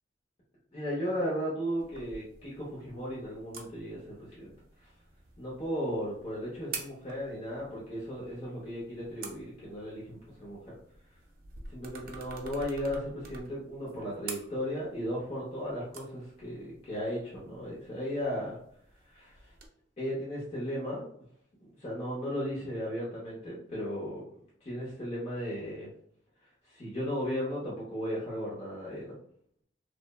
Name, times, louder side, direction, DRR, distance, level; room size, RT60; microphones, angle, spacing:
voice 1, 0.7-4.5 4.8-4.9 5.4-10.7 11.7-18.6 19.1-19.5 20.0-21.1 21.6-24.2 24.6-25.9 26.7-29.1, equal, 35° left, -7 dB, 0.7 m, -36 dB
sound 1, 1.8-19.7, right 4 dB, 50° right, 0.4 m, -49 dB
3.1 x 2.0 x 2.2 m, 0.65 s
head